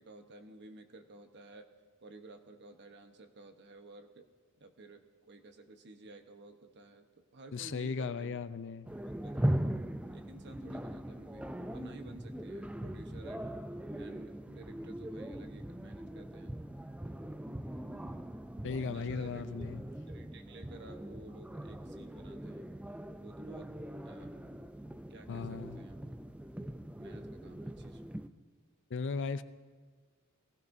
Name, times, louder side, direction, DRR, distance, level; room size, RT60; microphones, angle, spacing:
voice 1, 0.0-1.7 2.0-4.3 4.6-8.4 9.2-9.5 10.1-13.6 14.0-16.6 18.8-19.4 20.1-22.8 23.2-23.7 24.0-24.4 25.1-26.0 27.0-28.0, right 2 dB, 55° right, 6 dB, 1.1 m, -53 dB
voice 2, 7.5-8.9 18.6-19.8 25.3-25.8 28.9-29.4, left 5 dB, 60° left, 13 dB, 0.5 m, -36 dB
sound 1, 8.9-28.3, right 1 dB, 5° right, 0.3 m, -40 dB
20.5 x 16.0 x 2.7 m, 1.5 s
head